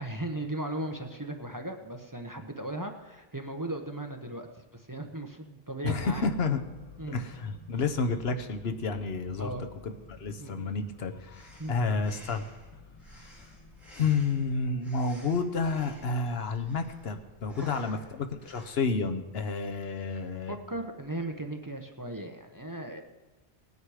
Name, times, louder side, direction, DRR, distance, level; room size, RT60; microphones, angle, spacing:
voice 1, 0.0-4.5 4.7-6.3 7.0-7.2 9.4-9.6 10.4-10.7 11.6-11.7 20.5-23.0, right 1 dB, 20° right, 4 dB, 0.8 m, -37 dB
voice 2, 5.8-6.6 7.1-9.5 9.8-12.5 13.1-13.3 13.9-20.6, left 4 dB, 70° left, 7 dB, 1.1 m, -30 dB
sound 1, 6.0-21.3, left 4 dB, 30° left, 1.3 m, -54 dB
Breathing, 11.3-18.9, equal, ahead, 4.0 m, -53 dB
18.5 x 9.5 x 4.9 m, 1.2 s
omnidirectional pair, 1.1 m